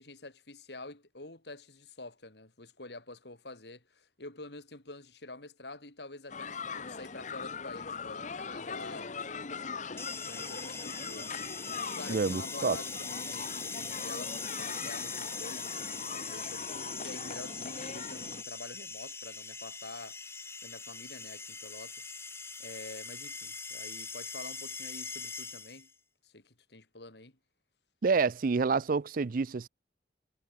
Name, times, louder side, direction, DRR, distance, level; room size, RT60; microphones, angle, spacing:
voice 1, 0.0-9.4 9.7-9.9 10.2-20.2 20.6-22.1 22.6-25.9 26.2-27.4, left 2 dB, 65° left, 3.5 m, -48 dB
sound 1, 6.3-18.4, left 5 dB, 45° left, 1.0 m, -41 dB
sound 2, 10.0-25.9, left 4 dB, 15° left, 1.2 m, -41 dB
voice 2, 12.1-12.8 28.0-29.7, right 4 dB, 50° right, 0.4 m, -28 dB
head